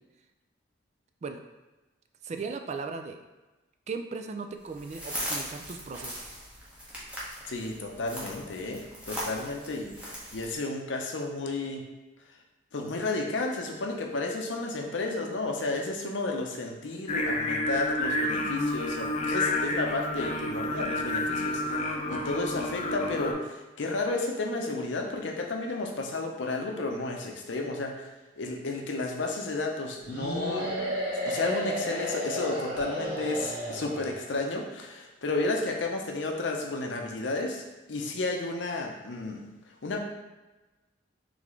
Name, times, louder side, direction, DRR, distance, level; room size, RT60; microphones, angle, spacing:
voice 1, 2.2-3.2 3.9-6.3, right 4 dB, 40° right, 6 dB, 0.3 m, -37 dB
sound 1, 4.7-10.6, equal, 5° right, 0.9 m, -39 dB
voice 2, 7.5-11.8 12.7-28.1 28.4-30.7 31.2-37.6 37.9-39.5 39.8-40.0, left 2 dB, 85° left, 2 dB, 0.6 m, -32 dB
Singing, 17.1-23.3, left 2 dB, 40° left, 0.4 m, -29 dB
sound 2, 30.1-34.2, equal, 55° right, 1.4 m, -32 dB
3.9 x 3.4 x 3.2 m, 1.1 s
head